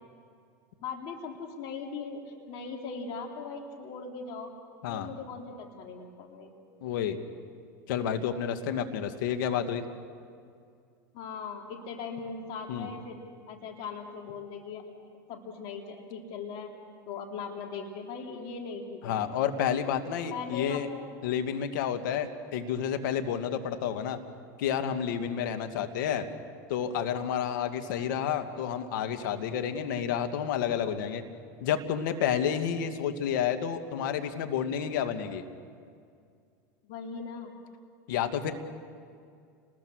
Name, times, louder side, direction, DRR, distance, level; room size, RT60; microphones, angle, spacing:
voice 1, 0.8-4.5 4.8-6.5 11.1-13.2 13.5-14.8 15.3-16.7 17.1-19.4 20.3-20.9 25.7-26.1 36.8-37.5, left 5 dB, 55° left, 2 dB, 3.1 m, -39 dB
voice 2, 6.8-7.2 7.9-9.8 12.7-12.9 19.0-20.9 21.2-24.2 24.6-26.3 26.7-31.2 31.6-35.4 38.1-38.5, left 8 dB, 75° left, 7 dB, 2.0 m, -30 dB
29.5 x 21.0 x 6.4 m, 2.3 s
hypercardioid pair, 100°, 11 cm